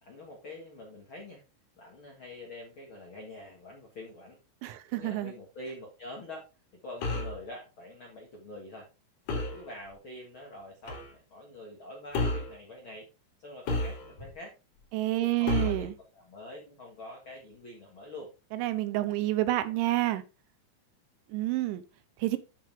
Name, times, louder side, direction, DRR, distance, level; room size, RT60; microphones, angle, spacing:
voice 1, 0.0-1.4 1.8-4.4 4.9-6.5 6.8-8.9 9.3-13.1 13.4-14.5 15.2-18.3, left 1 dB, 85° left, 1.1 m, -45 dB
voice 2, 4.6-5.3 14.9-15.9 18.5-20.2 21.3-21.8 22.2-22.4, right 16 dB, 80° right, 3.0 m, -28 dB
sound 1, 7.0-7.4 9.3-9.6 10.9-11.1 12.1-12.5 13.7-14.3 15.5-15.9, left 2 dB, 50° left, 3.0 m, -31 dB
10.5 x 5.5 x 3.5 m
omnidirectional pair, 5.6 m